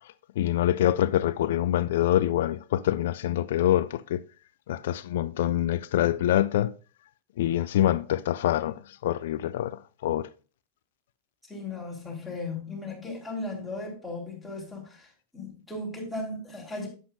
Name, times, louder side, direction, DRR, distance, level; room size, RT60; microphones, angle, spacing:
voice 1, 0.4-4.2 4.7-6.7 7.4-10.3, left 12 dB, 55° left, 0.4 m, -25 dB
voice 2, 11.5-16.9, left 2 dB, ahead, 3.8 m, -36 dB
11.0 x 8.2 x 2.5 m
figure-of-eight pair, 90°, 0 cm